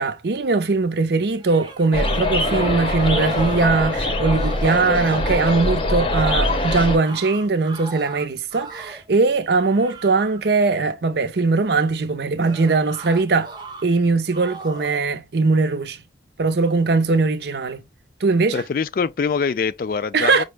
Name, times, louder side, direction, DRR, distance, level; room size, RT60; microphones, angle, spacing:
voice 1, 0.0-13.5 13.8-16.0 16.4-17.8 18.2-18.6 20.1-20.4, right 3 dB, 65° right, 0.6 m, -20 dB
sound 1, 1.3-3.8 4.1-5.0 6.4-9.1 9.5-10.5 12.4-13.9 14.3-15.0, right 4 dB, 25° right, 0.6 m, -39 dB
sound 2, 1.9-7.0, left 1 dB, 30° left, 0.7 m, -22 dB
voice 2, 18.5-20.4, left 5 dB, 50° left, 0.3 m, -24 dB
5.2 x 2.0 x 3.3 m
head